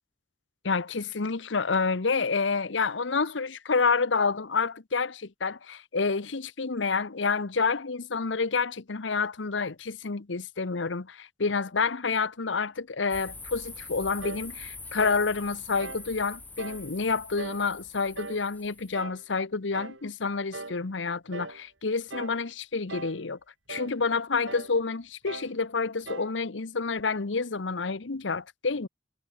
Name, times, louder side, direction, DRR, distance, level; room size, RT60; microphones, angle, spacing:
voice 1, 0.6-23.4 23.7-28.9, left 4 dB, 80° left, 1.0 m, -29 dB
sound 1, 13.1-19.0, left 3 dB, 10° left, 7.6 m, -44 dB
sound 2, 14.2-14.5 15.0-15.3 15.8-16.1 16.6-16.9 17.4-17.7 18.1-18.5 18.9-19.2 19.7-20.0 20.5-20.8 21.3-21.6 22.1-22.4 22.9-23.2 23.7-24.0 24.5-24.8 25.3-25.6 26.1-26.4, right 3 dB, 85° right, 5.3 m, -40 dB
head